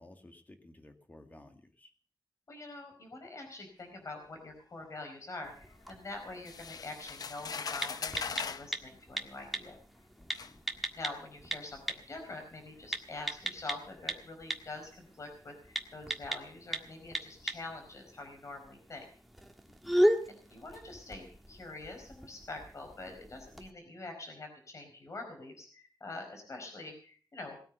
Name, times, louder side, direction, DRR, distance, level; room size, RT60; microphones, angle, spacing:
voice 1, 0.0-1.9 10.2-10.6 19.6-20.0, left 1 dB, 25° left, 5 dB, 2.1 m, -56 dB
voice 2, 2.5-9.8 11.0-19.0 20.3-27.6, left 2 dB, 45° left, 4 dB, 4.9 m, -45 dB
sound 1, 5.4-23.7, equal, ahead, 1.6 m, -38 dB
sound 2, 6.4-8.7 9.6-9.7 10.3-10.5, left 6 dB, 60° left, 0.7 m, -39 dB
19.5 x 9.2 x 6.8 m, 0.43 s
wide cardioid pair, 155°, 7 cm